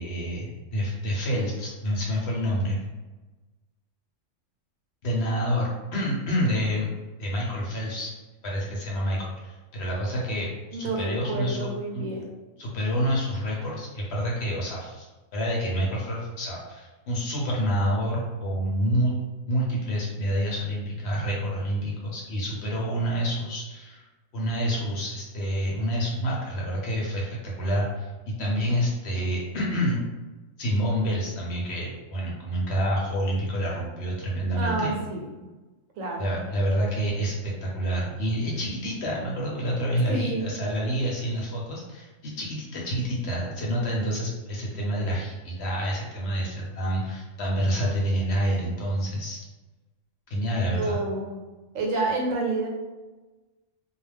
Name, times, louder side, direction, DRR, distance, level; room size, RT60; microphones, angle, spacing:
voice 1, 0.0-2.8 5.0-6.9 7.2-8.1 8.4-11.7 11.9-12.0 12.6-15.1 15.3-19.1 19.5-24.0 24.3-30.0 30.6-34.9 36.2-49.4 50.3-51.0, equal, 60° left, -3 dB, 0.9 m, -28 dB
voice 2, 10.7-12.3 34.6-35.5 36.0-36.4 40.1-40.5 50.7-51.4 51.7-52.7, right 2 dB, 80° right, 0 dB, 1.0 m, -29 dB
2.3 x 2.2 x 3.3 m, 1.2 s
omnidirectional pair, 1.3 m